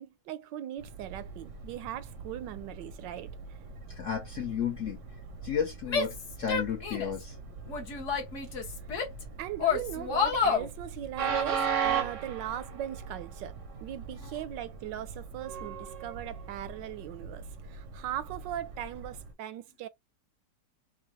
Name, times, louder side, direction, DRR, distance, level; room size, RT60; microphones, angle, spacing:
voice 1, 0.0-3.4 8.5-9.0 9.4-19.9, right 12 dB, 80° right, 1.2 m, -39 dB
Train, 0.8-19.3, right 6 dB, 60° right, 0.8 m, -39 dB
voice 2, 3.9-5.0 5.4-7.4 14.2-14.3, left 8 dB, 65° left, 0.8 m, -33 dB
Female speech woman speaking / Yell, 5.9-7.2 7.7-9.2 9.6-10.7, left 6 dB, 50° left, 1.1 m, -29 dB
4.6 x 2.3 x 3.0 m
omnidirectional pair, 2.0 m